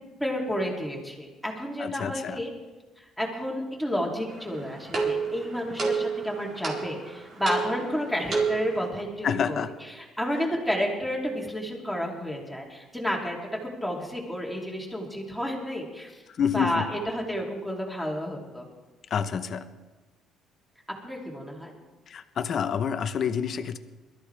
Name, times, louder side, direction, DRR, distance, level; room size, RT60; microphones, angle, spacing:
voice 1, 0.2-2.5 3.0-16.2 16.5-18.6 21.0-21.7, equal, ahead, -1 dB, 3.0 m, -31 dB
voice 2, 1.8-2.4 9.2-9.7 16.4-16.8 19.1-19.6 22.1-23.8, left 7 dB, 45° left, 10 dB, 0.9 m, -28 dB
sound 1, 4.3-8.9, right 5 dB, 45° right, 4.2 m, -30 dB
22.5 x 13.5 x 3.4 m, 1.2 s
cardioid pair, 125°, 0 cm